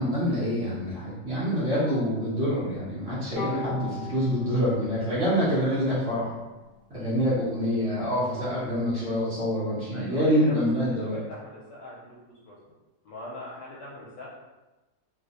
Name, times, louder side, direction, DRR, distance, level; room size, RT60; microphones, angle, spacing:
voice 1, 0.0-6.3 6.9-11.2, equal, 40° right, -11 dB, 1.7 m, -26 dB
Bowed string instrument, 3.4-6.7, left 3 dB, 60° right, 2.2 m, -39 dB
voice 2, 9.9-12.7 13.0-14.3, left 1 dB, 70° left, -4 dB, 1.2 m, -42 dB
3.3 x 3.2 x 2.5 m, 1.1 s
omnidirectional pair, 2.1 m